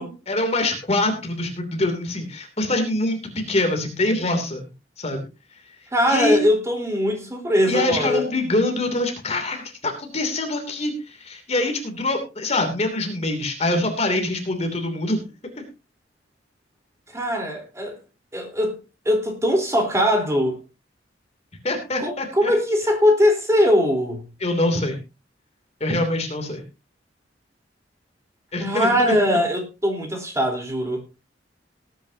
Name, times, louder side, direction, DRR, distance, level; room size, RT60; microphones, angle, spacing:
voice 1, 0.3-4.6 5.0-5.3 6.1-6.4 7.7-15.2 21.6-22.5 24.4-25.0 25.8-26.6 28.5-28.9, left 2 dB, 35° left, 4 dB, 3.0 m, -24 dB
voice 2, 5.9-8.3 17.1-18.0 18.3-18.8 19.1-20.6 22.0-24.3 28.6-31.0, equal, 15° right, 2 dB, 4.0 m, -21 dB
19.0 x 10.0 x 2.8 m, 0.28 s
head